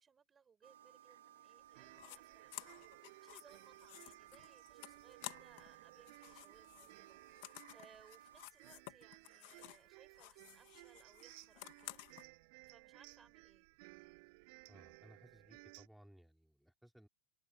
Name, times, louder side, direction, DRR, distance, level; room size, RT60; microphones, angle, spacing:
voice 1, 0.0-12.0 12.7-13.7, right 6 dB, 15° right, 5.0 m, -67 dB
sound 1, 0.6-8.5, right 12 dB, 85° right, 5.4 m, -61 dB
sound 2, 1.6-15.9, right 30 dB, 50° right, 7.4 m, -60 dB
sound 3, 1.9-2.2 2.5-5.7 6.0-9.9 10.1-12.2, left 22 dB, 55° left, 1.6 m, -53 dB
voice 2, 14.7-17.1, equal, ahead, 4.3 m, -62 dB
supercardioid pair, 140°, 0 cm